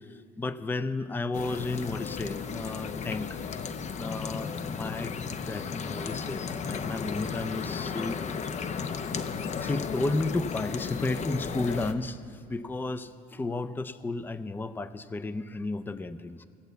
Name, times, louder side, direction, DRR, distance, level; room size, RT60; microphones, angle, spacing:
voice 1, 0.1-3.4 4.0-5.1 5.4-8.4 9.3-16.5, left 2 dB, 10° left, 13 dB, 0.4 m, -33 dB
sound 1, 1.3-11.9, left 6 dB, 45° left, 0.7 m, -34 dB
16.5 x 8.3 x 8.1 m, 2.4 s
cardioid pair, 110°, 17 cm